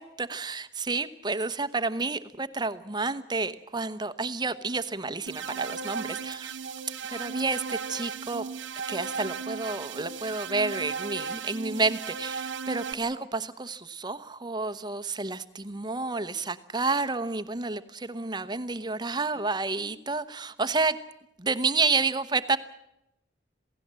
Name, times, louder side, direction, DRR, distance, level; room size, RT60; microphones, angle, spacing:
voice 1, 0.0-6.6 7.1-8.4 8.9-21.0 21.4-22.6, right 3 dB, 25° right, 11 dB, 1.0 m, -30 dB
sound 1, 5.3-12.9, right 5 dB, 85° right, 1.1 m, -36 dB
27.5 x 17.0 x 7.6 m, 0.83 s
head